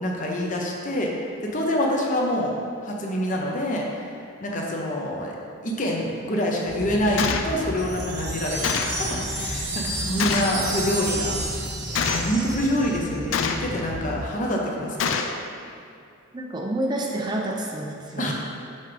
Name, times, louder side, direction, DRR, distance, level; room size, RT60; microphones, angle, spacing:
voice 1, 0.0-1.1 1.4-2.6 2.8-4.1 4.4-5.4 5.6-11.4 11.9-15.2 18.2-18.3, equal, 40° left, -2 dB, 0.8 m, -26 dB
sound 1, 6.6-14.2, left 1 dB, 60° left, 1.1 m, -34 dB
Gunshot gunfire, 7.2-7.5 8.6-9.0 10.2-10.6 11.9-12.4 13.3-13.8 15.0-15.4, left 6 dB, 80° left, 0.4 m, -26 dB
sound 2, 7.8-13.1, right 2 dB, 60° right, 0.9 m, -32 dB
voice 2, 16.3-18.3, right 1 dB, 20° right, -1 dB, 0.5 m, -28 dB
5.8 x 5.7 x 3.3 m, 2.5 s
head